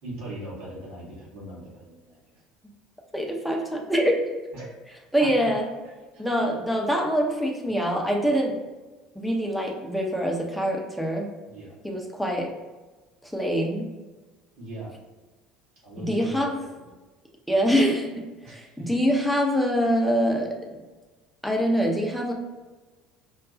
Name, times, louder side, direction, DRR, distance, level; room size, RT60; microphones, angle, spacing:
voice 1, 0.0-2.2 4.5-5.5 6.0-6.5 11.4-11.7 14.6-14.9 15.8-16.9 18.4-18.9, right 1 dB, 65° right, -7 dB, 1.3 m, -41 dB
voice 2, 3.1-4.4 5.1-5.7 6.2-8.6 9.2-11.3 11.8-12.5 13.2-13.8 16.0-16.6 17.5-18.1 18.5-20.6 21.4-22.3, equal, ahead, 0 dB, 0.7 m, -24 dB
4.7 x 2.2 x 2.5 m, 1.2 s
figure-of-eight pair, 60°, 0 cm